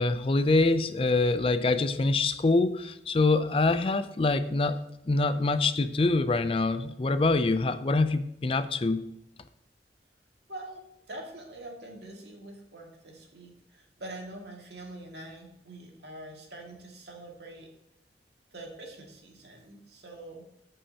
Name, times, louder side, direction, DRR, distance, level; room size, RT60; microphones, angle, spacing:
voice 1, 0.0-4.8 5.1-9.0, left 3 dB, 30° left, 11 dB, 0.4 m, -25 dB
voice 2, 10.5-10.8 11.1-17.7 18.5-20.5, right 1 dB, 75° right, 0 dB, 2.0 m, -44 dB
13.5 x 5.4 x 2.8 m, 0.82 s
head